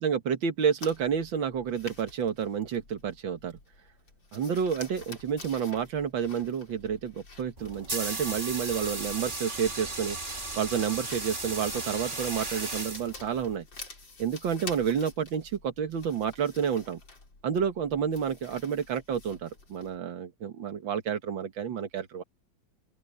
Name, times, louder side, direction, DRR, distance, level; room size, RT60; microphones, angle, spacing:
voice 1, 0.0-3.6 4.3-10.2 10.6-13.7 14.2-17.0 17.4-22.2, right 7 dB, 80° right, 2.2 m, -30 dB
sound 1, 0.8-20.0, left 3 dB, 70° left, 5.4 m, -49 dB
sound 2, 7.6-13.6, right 2 dB, 25° right, 2.9 m, -36 dB
open air
omnidirectional pair, 2.1 m